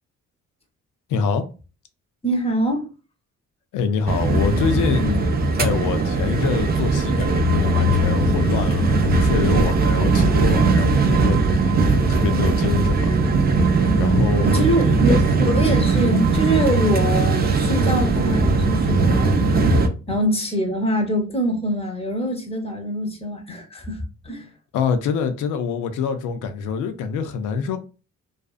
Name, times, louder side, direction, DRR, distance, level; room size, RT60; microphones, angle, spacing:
voice 1, 1.1-1.5 3.7-11.8 12.1-13.2 13.7-15.2 24.7-27.8, left 6 dB, 85° left, 0.5 m, -25 dB
voice 2, 2.2-2.9 14.4-19.4 20.1-24.5 27.6-27.7, equal, 20° left, 0.8 m, -24 dB
sound 1, 4.1-19.9, right 3 dB, 30° right, 0.4 m, -19 dB
2.5 x 2.4 x 2.4 m
cardioid pair, 90°, 30 cm